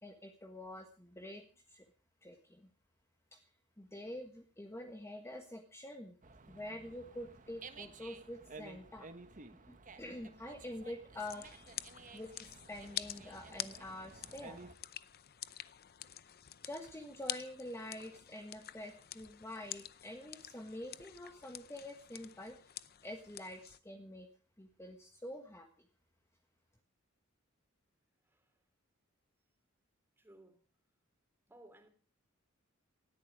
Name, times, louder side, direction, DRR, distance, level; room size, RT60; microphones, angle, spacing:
voice 1, 0.0-1.8 2.2-2.7 3.3-3.4 3.8-6.2 6.5-9.1 9.5-11.7 12.1-14.6 16.6-22.7 23.0-24.3 24.6-25.7, left 1 dB, 15° left, 1.5 m, -47 dB
Dog, 6.2-14.7, right 3 dB, 40° right, 1.4 m, -54 dB
sound 1, 11.2-23.8, left 12 dB, 50° left, 0.7 m, -48 dB
voice 2, 28.2-28.6 30.2-30.6 31.5-31.9, right 1 dB, 10° right, 3.4 m, -60 dB
19.0 x 13.5 x 4.9 m
head